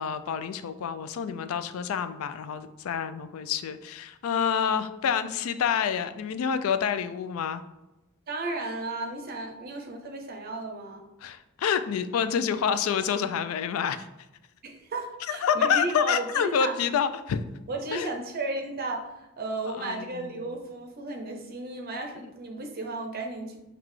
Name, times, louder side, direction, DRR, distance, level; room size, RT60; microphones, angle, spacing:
voice 1, 0.0-7.6 11.2-14.1 15.3-17.4 17.9-18.1 19.8-20.4, left 7 dB, 80° left, 11 dB, 0.3 m, -28 dB
voice 2, 8.3-11.1 14.6-16.7 17.7-23.6, right 2 dB, 45° right, 4 dB, 0.5 m, -34 dB
5.8 x 2.3 x 3.1 m, 0.98 s
head